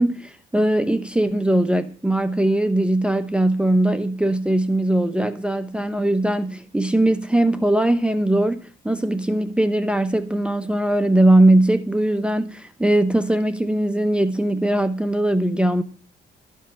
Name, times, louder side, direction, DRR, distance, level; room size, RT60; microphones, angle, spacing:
voice 1, 0.0-15.8, right 1 dB, 5° right, 0.9 m, -20 dB
13.0 x 5.5 x 8.9 m
cardioid pair, 90°, 20 cm